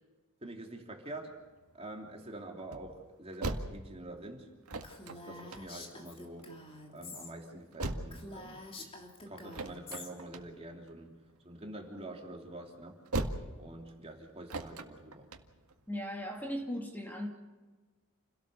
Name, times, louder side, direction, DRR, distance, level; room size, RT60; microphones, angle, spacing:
voice 1, 0.4-1.4 1.7-4.5 5.1-6.5 6.9-9.0 9.3-13.0 13.6-15.3, right 1 dB, 25° right, 2 dB, 2.9 m, -46 dB
sound 1, 1.1-16.6, right 2 dB, 90° right, 1.9 m, -42 dB
Female speech woman speaking, 4.8-7.3 7.6-7.7 8.1-10.1, left 2 dB, 25° left, 3.1 m, -48 dB
voice 2, 15.9-17.3, equal, 10° left, 1 dB, 2.7 m, -37 dB
29.0 x 17.5 x 6.7 m, 1.3 s
head